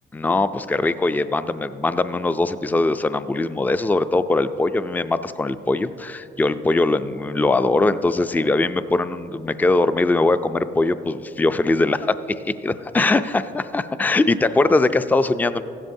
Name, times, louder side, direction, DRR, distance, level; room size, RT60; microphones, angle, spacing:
voice 1, 0.1-12.2 12.5-15.6, left 2 dB, 10° left, 12 dB, 0.3 m, -21 dB
15.5 x 12.5 x 2.7 m, 2.8 s
cardioid pair, 90°, 20 cm